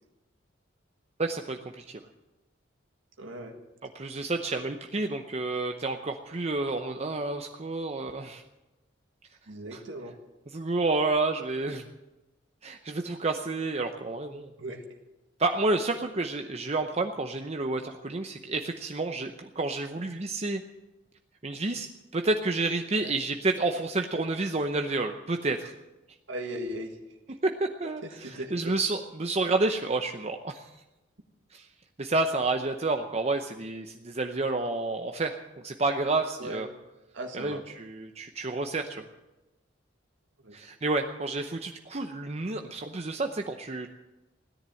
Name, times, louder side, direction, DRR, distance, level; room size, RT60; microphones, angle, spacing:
voice 1, 1.2-2.0 3.9-8.4 9.7-9.8 10.5-11.8 12.6-14.5 15.4-20.6 21.4-21.9 22.1-25.7 27.4-30.7 31.5-31.7 32.0-35.3 35.6-36.7 37.3-39.0 40.5-43.9, right 3 dB, 35° right, 5 dB, 0.8 m, -30 dB
voice 2, 3.2-3.6 9.5-10.1 14.6-14.8 23.0-23.1 26.3-26.9 28.0-28.7 36.4-36.6 37.1-37.6 40.4-40.6, right 1 dB, 75° right, 2 dB, 1.8 m, -38 dB
17.0 x 10.5 x 7.7 m, 1.0 s
head